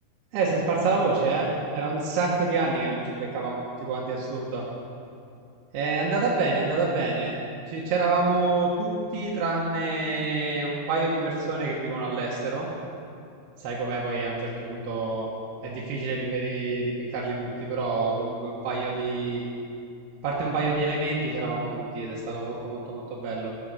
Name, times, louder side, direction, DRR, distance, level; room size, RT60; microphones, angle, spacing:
voice 1, 0.3-1.5 1.7-4.7 5.7-7.3 7.7-12.7 13.6-15.3 15.6-19.4 20.2-23.5, right 3 dB, 85° right, -5 dB, 3.3 m, -27 dB
13.5 x 8.7 x 6.7 m, 2.5 s
omnidirectional pair, 4.5 m